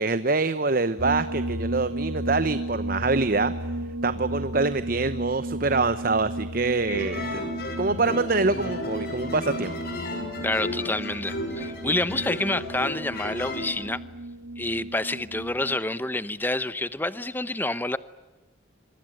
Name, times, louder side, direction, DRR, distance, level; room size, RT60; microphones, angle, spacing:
voice 1, 0.0-3.5 4.0-7.5 7.8-9.7, right 3 dB, 50° right, 0.9 m, -25 dB
sound 1, 1.0-15.8, right 1 dB, 75° right, 1.6 m, -34 dB
sound 2, 6.9-13.9, left 1 dB, 55° left, 6.9 m, -34 dB
Piano, 6.9-8.0, right 1 dB, 35° left, 6.1 m, -42 dB
voice 2, 10.4-14.0 14.6-18.0, left 2 dB, 10° left, 0.9 m, -28 dB
26.5 x 24.0 x 9.0 m
head